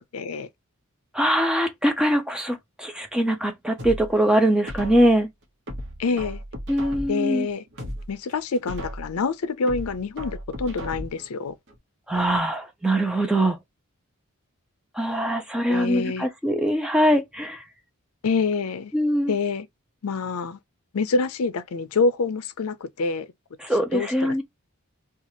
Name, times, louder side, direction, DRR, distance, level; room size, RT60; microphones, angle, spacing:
voice 1, 0.1-0.5 6.0-6.4 7.1-7.6 8.1-11.5 15.7-16.3 18.2-18.9 19.3-19.7 20.0-20.6 20.9-23.3 23.9-24.4, left 4 dB, 70° left, 0.5 m, -26 dB
voice 2, 1.1-5.3 6.7-7.5 12.1-13.6 15.0-17.6 18.9-19.3 23.6-24.4, right 1 dB, 5° right, 0.4 m, -22 dB
sound 1, 3.8-5.2 5.7-7.3 7.7-9.2 9.7-11.3 11.7-11.8, equal, 55° right, 1.0 m, -36 dB
2.9 x 2.4 x 2.6 m
head